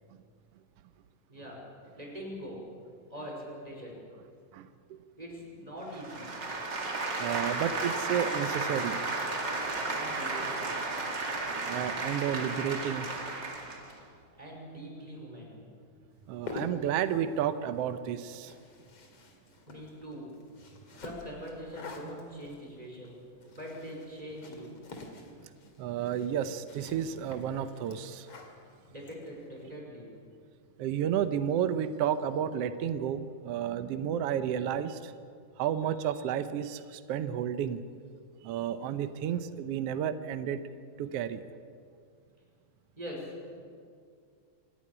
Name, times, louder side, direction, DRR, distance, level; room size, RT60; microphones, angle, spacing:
voice 1, 1.3-1.6 1.9-2.7 3.1-4.0 5.2-6.3 9.9-10.7 14.4-15.5 19.7-20.4 21.0-23.3 23.5-24.8 28.9-30.1 43.0-43.3 43.6-43.7, equal, 10° right, -2 dB, 5.2 m, -43 dB
voice 2, 4.5-5.0 7.2-9.0 11.7-13.1 16.3-18.5 25.3-25.4 25.8-28.3 30.8-35.1 35.6-37.8 38.4-40.6 41.0-41.5, right 9 dB, 80° right, 10 dB, 1.4 m, -31 dB
sound 1, 5.9-13.9, right 3 dB, 35° right, 2.6 m, -33 dB
sound 2, 16.2-29.7, left 3 dB, 50° left, 3.1 m, -48 dB
26.0 x 12.0 x 10.0 m, 2.2 s
omnidirectional pair, 3.7 m